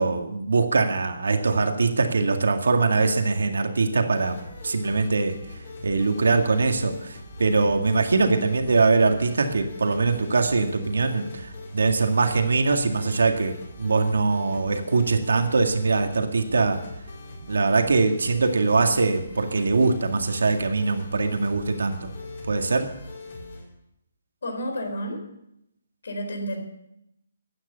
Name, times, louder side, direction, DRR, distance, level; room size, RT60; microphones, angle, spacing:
voice 1, 0.0-4.4 4.6-5.4 5.8-16.8 17.4-22.1 22.5-22.9, right 3 dB, 85° right, 5 dB, 2.0 m, -22 dB
sound 1, 4.1-23.6, left 2 dB, 40° left, 5.7 m, -41 dB
voice 2, 24.4-25.2 26.0-26.6, equal, 70° left, 5 dB, 4.4 m, -30 dB
15.0 x 9.7 x 6.9 m, 0.82 s
hypercardioid pair, 175°, 0 cm